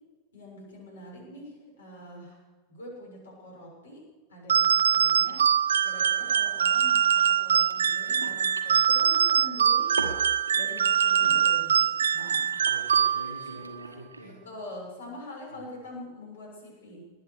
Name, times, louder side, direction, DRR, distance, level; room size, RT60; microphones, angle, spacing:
voice 1, 0.3-2.4 2.7-5.5 5.8-10.0 10.5-12.5 14.2-17.1, left 1 dB, 65° left, -1 dB, 6.5 m, -44 dB
sound 1, 4.3-4.4 4.6-4.7 4.9-9.6 9.9-14.3, right 2 dB, 85° right, 1.3 m, -42 dB
sound 2, 4.5-13.5, right 8 dB, 65° right, 0.4 m, -23 dB
voice 2, 12.6-14.4 15.5-15.7, right 1 dB, 85° left, -2 dB, 2.4 m, -45 dB
19.5 x 10.5 x 6.6 m, 1.4 s
figure-of-eight pair, 90°, 0 cm